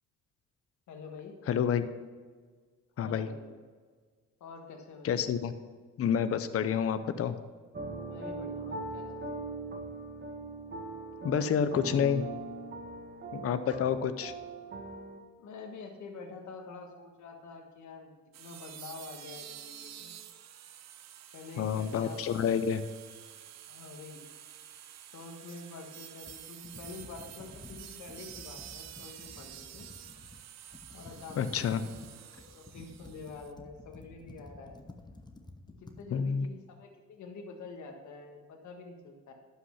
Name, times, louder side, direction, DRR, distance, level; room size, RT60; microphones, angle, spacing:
voice 1, 0.9-1.3 3.0-3.5 4.4-5.2 8.1-9.3 15.4-18.1 18.4-20.1 21.3-22.5 23.7-24.2 25.1-29.9 30.9-34.8 35.8-39.3, left 4 dB, 70° left, 3 dB, 1.6 m, -47 dB
voice 2, 1.5-1.9 3.0-3.3 5.0-5.5 6.0-7.4 11.2-12.3 13.3-14.3 21.6-22.8 31.4-31.8 36.1-36.5, left 7 dB, 50° left, 11 dB, 0.7 m, -29 dB
sound 1, 7.7-15.2, right 2 dB, 35° right, 1.7 m, -40 dB
sound 2, 18.3-33.5, right 10 dB, 60° right, 0.7 m, -49 dB
Computer keyboard, 26.2-30.4 30.7-36.0, left 2 dB, 15° left, 1.0 m, -51 dB
11.5 x 5.7 x 5.8 m, 1.6 s
cardioid pair, 90°, 30 cm